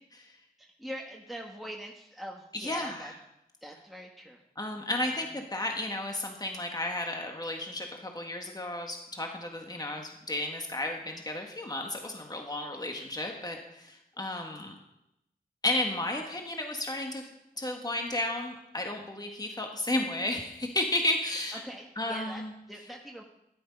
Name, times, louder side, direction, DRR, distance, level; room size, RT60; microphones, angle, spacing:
voice 1, 0.6-3.1 3.6-4.4 5.0-5.3 21.5-22.4 22.7-23.2, equal, ahead, 0 dB, 1.5 m, -43 dB
voice 2, 2.5-3.1 4.6-14.7 15.6-17.2 17.6-21.6 22.0-22.5, left 1 dB, 25° left, 2 dB, 1.7 m, -33 dB
12.5 x 11.0 x 5.4 m, 0.86 s
wide cardioid pair, 75°, 16 cm